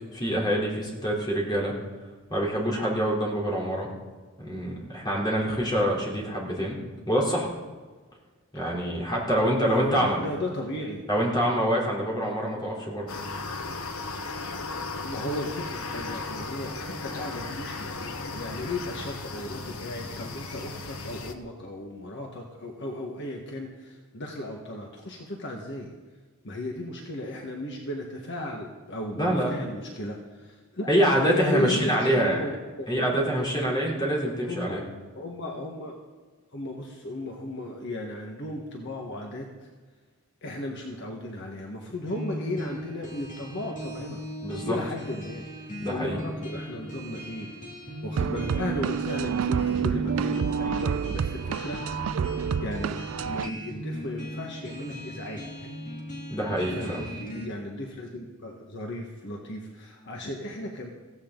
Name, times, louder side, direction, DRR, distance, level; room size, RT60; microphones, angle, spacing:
voice 1, 0.1-1.7 2.3-3.9 4.4-6.8 7.1-7.5 8.5-10.2 11.1-13.1 29.2-29.6 30.9-32.4 32.9-34.8 44.4-44.8 45.8-46.2 56.3-57.1, equal, 20° left, -3 dB, 3.7 m, -26 dB
voice 2, 9.6-11.0 15.0-25.9 26.4-33.3 34.4-34.8 35.1-36.0 36.5-39.5 40.4-44.2 44.6-45.5 45.8-47.5 48.0-52.3 52.6-53.0 53.2-55.4 56.7-60.9, left 1 dB, 55° left, 0 dB, 1.6 m, -35 dB
sound 1, 13.1-21.3, left 3 dB, 80° left, 1.2 m, -36 dB
sound 2, 42.1-57.5, equal, 40° left, 2.6 m, -38 dB
sound 3, 48.2-53.5, right 7 dB, 75° right, 0.4 m, -28 dB
16.5 x 16.0 x 4.0 m, 1.4 s
head